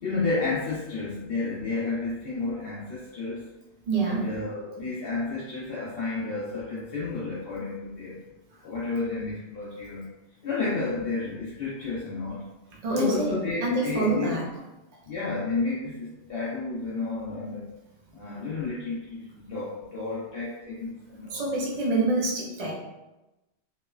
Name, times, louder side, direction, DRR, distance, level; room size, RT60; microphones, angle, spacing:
voice 1, 0.0-3.5 4.0-8.2 8.6-10.1 10.4-12.4 12.9-14.4 15.1-17.7 18.1-21.4, left 3 dB, 60° left, -8 dB, 0.7 m, -31 dB
voice 2, 3.9-4.3 12.8-14.4 21.3-22.7, right 3 dB, 45° right, -4 dB, 0.6 m, -26 dB
3.0 x 2.0 x 2.3 m, 1.0 s
omnidirectional pair, 1.2 m